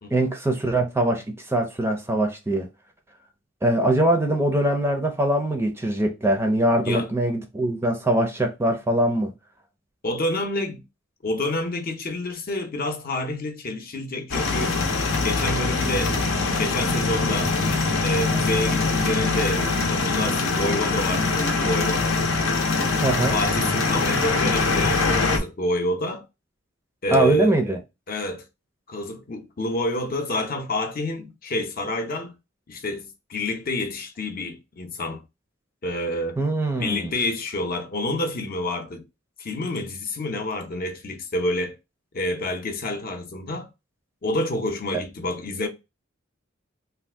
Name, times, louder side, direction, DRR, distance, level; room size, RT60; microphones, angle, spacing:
voice 1, 0.1-2.7 3.6-9.3 23.0-23.4 27.1-27.8 36.4-37.1, right 1 dB, 15° right, 0.4 m, -22 dB
voice 2, 10.0-10.8 11.2-14.7 15.2-17.6 18.0-22.2 23.3-26.2 27.0-27.6 28.1-28.4 28.9-32.3 32.7-35.2 35.8-36.4 36.8-39.0 39.4-41.7 42.1-43.7 44.2-45.7, left 1 dB, 50° left, 0.6 m, -28 dB
sound 1, 14.3-25.4, left 3 dB, 85° left, 0.7 m, -23 dB
2.6 x 2.4 x 3.4 m
head